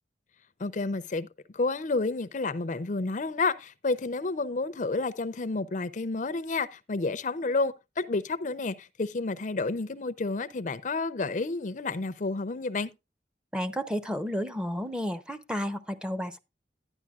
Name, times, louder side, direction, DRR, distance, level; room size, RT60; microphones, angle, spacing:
voice 1, 0.6-1.3 1.5-12.9, left 3 dB, 45° left, 0.5 m, -30 dB
voice 2, 13.5-16.4, equal, 5° right, 0.7 m, -32 dB
11.5 x 9.8 x 2.4 m
head